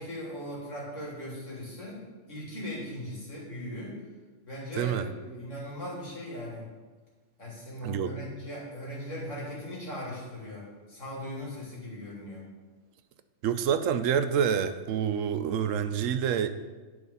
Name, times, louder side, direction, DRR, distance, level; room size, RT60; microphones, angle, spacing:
voice 1, 0.0-2.0 2.3-4.0 4.5-6.6 7.4-12.4, equal, 75° left, -5 dB, 2.9 m, -39 dB
voice 2, 4.8-5.1 7.8-8.2 13.4-16.5, right 8 dB, 85° right, 10 dB, 1.0 m, -27 dB
9.5 x 5.0 x 5.4 m, 1.3 s
omnidirectional pair, 1.3 m